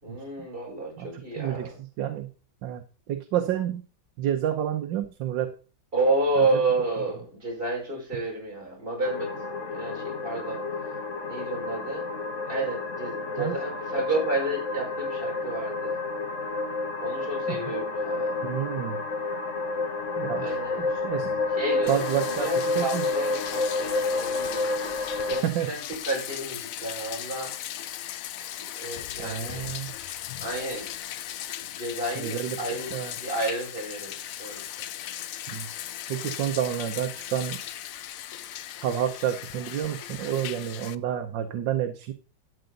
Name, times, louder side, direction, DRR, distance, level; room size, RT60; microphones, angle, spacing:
voice 1, 0.0-1.7 5.9-10.7 11.2-12.1 12.5-16.0 17.0-18.3 20.4-21.0 21.6-24.7 25.3-27.5 28.6-29.7 30.4-31.0 31.8-34.6, right 2 dB, 25° right, -2 dB, 5.0 m, -31 dB
voice 2, 1.0-1.7 2.0-2.3 2.6-3.8 4.2-5.5 6.4-6.5 13.4-13.6 17.5-17.7 18.4-19.0 20.2-20.5 20.8-21.4 21.9-23.0 25.4-25.7 29.2-29.9 32.2-33.1 35.5-35.7 36.1-37.6 38.8-42.1, right 10 dB, 75° right, 6 dB, 1.6 m, -29 dB
sound 1, 9.0-25.4, left 3 dB, 45° left, 1.4 m, -30 dB
Bathtub (filling or washing), 21.9-41.0, left 11 dB, 80° left, 0.7 m, -38 dB
12.5 x 7.8 x 3.9 m, 0.36 s
omnidirectional pair, 2.1 m